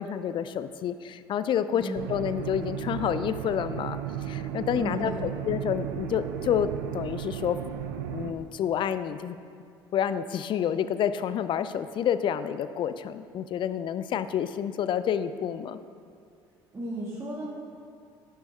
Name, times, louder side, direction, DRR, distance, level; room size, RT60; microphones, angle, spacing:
voice 1, 0.0-4.0 4.3-7.6 8.1-9.4 9.9-15.8, left 9 dB, 40° left, 13 dB, 0.4 m, -29 dB
voice 2, 1.7-2.1 4.7-5.3 16.7-17.5, right 1 dB, 20° right, -6 dB, 1.6 m, -34 dB
sound 1, 2.0-8.3, right 10 dB, 70° right, 0.5 m, -35 dB
10.5 x 6.6 x 3.3 m, 2.3 s
figure-of-eight pair, 60°, 13 cm